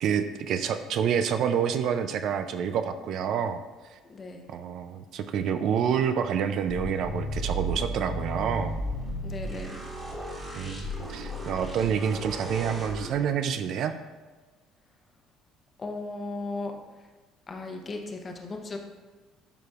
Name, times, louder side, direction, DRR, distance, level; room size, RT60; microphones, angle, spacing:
voice 1, 0.0-3.6 3.9-4.0 4.5-8.7 10.6-13.9, right 8 dB, 50° right, 9 dB, 0.4 m, -28 dB
voice 2, 4.0-4.4 9.2-9.7 15.8-16.7 17.5-18.8, left 3 dB, 25° left, 3 dB, 0.8 m, -36 dB
sound 1, 6.7-13.1, equal, 15° right, 2.0 m, -34 dB
12.0 x 5.1 x 2.4 m, 1.3 s
cardioid pair, 155°, 0 cm